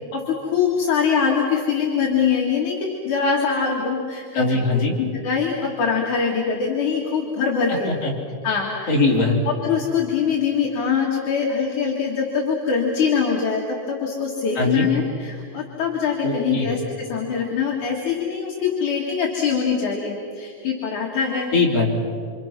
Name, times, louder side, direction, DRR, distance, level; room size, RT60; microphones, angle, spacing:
voice 1, 0.1-4.7 5.0-7.9 8.4-8.9 9.5-21.5, left 6 dB, 65° left, -3 dB, 3.5 m, -23 dB
voice 2, 4.3-5.0 7.8-8.1 8.9-9.4 14.5-14.9 16.2-16.7 21.5-21.9, left 3 dB, 45° left, -3 dB, 4.9 m, -21 dB
28.5 x 27.0 x 6.1 m, 2.2 s
omnidirectional pair, 3.8 m